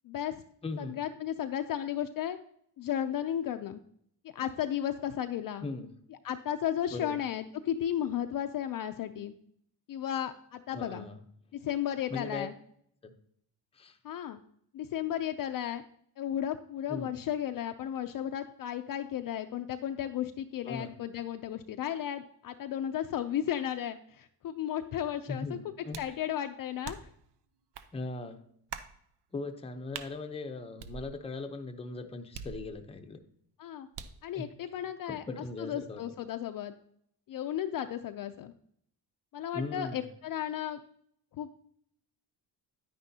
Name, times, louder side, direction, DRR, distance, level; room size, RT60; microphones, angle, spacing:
voice 1, 0.0-0.4 0.8-2.4 2.8-3.8 4.2-5.7 6.2-9.3 9.9-11.1 11.5-12.5 14.0-14.4 14.7-15.8 16.2-25.6 26.0-27.0 33.6-33.9 34.2-35.2 35.6-36.7 37.3-38.5 39.3-40.8 41.4-41.5, left 10 dB, 55° left, 7 dB, 0.5 m, -34 dB
voice 2, 0.6-1.0 5.6-5.9 6.9-7.2 10.7-11.2 12.1-12.5 13.0-13.1 13.7-14.0 16.9-17.1 20.7-20.9 25.3-26.0 27.9-28.5 29.3-33.2 34.3-34.5 35.1-36.0 39.5-40.1, left 3 dB, 15° left, 6 dB, 0.6 m, -39 dB
sound 1, 25.9-26.2 26.8-27.2 27.7-27.9 28.7-29.0 29.9-30.1 30.8-31.4 32.3-33.0 33.9-34.3, right 7 dB, 80° right, 0.8 m, -43 dB
10.0 x 9.6 x 2.8 m, 0.69 s
cardioid pair, 155°, 41 cm